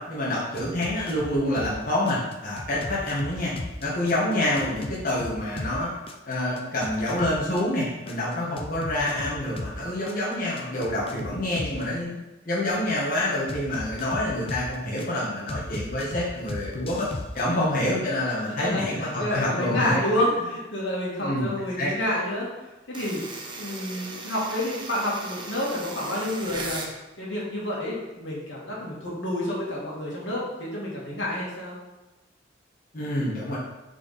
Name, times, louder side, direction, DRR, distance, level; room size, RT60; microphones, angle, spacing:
voice 1, 0.1-3.5 3.8-5.9 6.2-12.2 12.4-17.1 17.3-20.0 21.2-21.5 21.8-21.9 32.9-33.6, left 1 dB, 45° left, -7 dB, 1.6 m, -27 dB
sound 1, 0.6-1.8 2.1-5.8 6.1-9.8 10.1-11.8 13.5-15.1 15.5-17.4, left 2 dB, 30° left, 0.6 m, -36 dB
voice 2, 2.8-3.1 8.4-9.0 17.5-17.7 18.6-22.5 22.9-23.2 23.5-26.8 27.2-31.8, left 1 dB, 80° left, -5 dB, 2.4 m, -29 dB
sound 2, 22.9-26.9, right 3 dB, 25° right, 1.0 m, -37 dB
7.0 x 4.8 x 4.3 m, 1.0 s
head